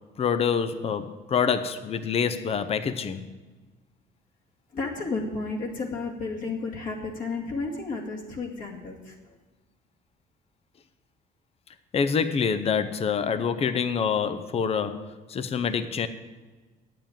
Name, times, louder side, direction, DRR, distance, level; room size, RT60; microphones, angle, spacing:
voice 1, 0.2-3.2 11.9-16.1, left 6 dB, 35° left, 11 dB, 0.7 m, -26 dB
voice 2, 4.7-9.2, left 3 dB, 50° left, -2 dB, 2.2 m, -32 dB
8.9 x 7.7 x 9.1 m, 1.3 s
cardioid pair, 110°, 17 cm